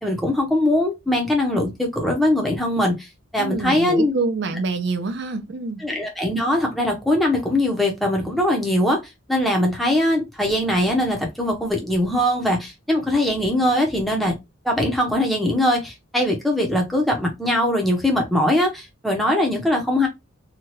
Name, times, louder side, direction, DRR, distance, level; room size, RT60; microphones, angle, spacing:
voice 1, 0.0-4.1 5.8-9.0 9.3-14.3 14.6-20.1, left 1 dB, ahead, 0.7 m, -21 dB
voice 2, 3.4-5.8, right 3 dB, 55° right, 0.5 m, -26 dB
2.8 x 2.3 x 3.0 m
head